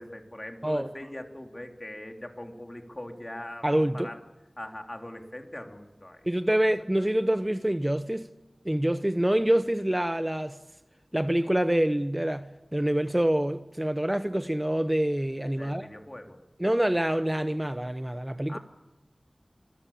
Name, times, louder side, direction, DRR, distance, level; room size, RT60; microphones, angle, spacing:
voice 1, 0.0-3.7 3.9-4.2 4.6-6.6 15.6-16.4 18.5-18.6, left 1 dB, 30° left, 3.4 m, -41 dB
voice 2, 0.6-0.9 3.6-4.1 6.2-8.3 8.6-10.6 11.1-15.9 16.6-18.6, right 1 dB, 15° right, 0.9 m, -26 dB
26.5 x 22.0 x 8.6 m
wide cardioid pair, 55°, 0 cm